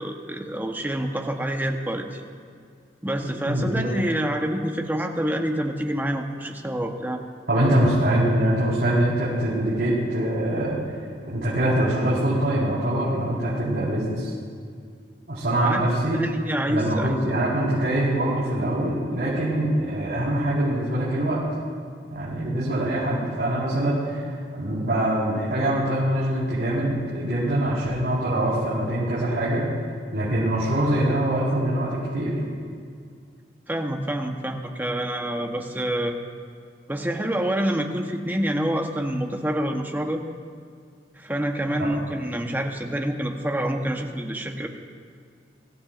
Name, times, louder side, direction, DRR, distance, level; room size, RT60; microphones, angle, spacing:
voice 1, 0.0-2.2 3.0-7.2 15.6-17.2 33.7-36.2 36.9-40.2 41.1-44.7, right 1 dB, 10° right, 3 dB, 1.0 m, -27 dB
voice 2, 3.5-3.9 7.5-10.8 11.3-14.3 15.3-16.2 16.7-21.4 22.1-24.2 24.6-29.7 30.1-32.4 41.8-41.9, right 1 dB, 65° right, -10 dB, 4.6 m, -23 dB
24.0 x 15.0 x 2.5 m, 2.2 s
head